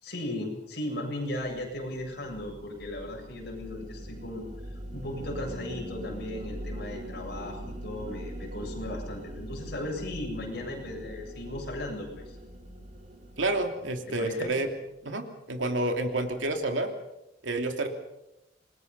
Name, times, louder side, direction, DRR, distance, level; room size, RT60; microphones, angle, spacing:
voice 1, 0.0-4.5 4.9-12.4 14.1-14.5, left 1 dB, 60° left, 0 dB, 7.8 m, -36 dB
sound 1, 1.7-14.9, right 1 dB, 40° right, 3.2 m, -42 dB
voice 2, 13.4-14.7 15.0-16.9 17.4-17.9, right 2 dB, 85° right, 4 dB, 3.0 m, -29 dB
27.5 x 21.5 x 5.5 m, 0.92 s
head